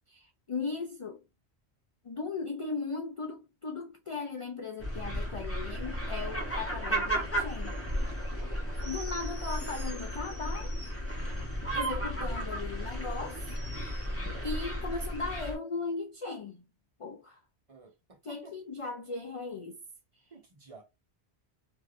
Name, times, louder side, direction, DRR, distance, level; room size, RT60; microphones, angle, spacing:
voice 1, 0.1-1.2 2.0-7.8 8.8-10.8 11.7-13.5 14.1-16.6 17.0-17.4 18.2-19.8, left 4 dB, 55° left, 0.3 m, -37 dB
sound 1, 4.8-15.6, right 1 dB, 15° left, 0.9 m, -34 dB
voice 2, 17.7-18.5 20.3-20.8, right 4 dB, 35° right, 0.7 m, -53 dB
3.2 x 2.6 x 2.5 m
omnidirectional pair, 1.1 m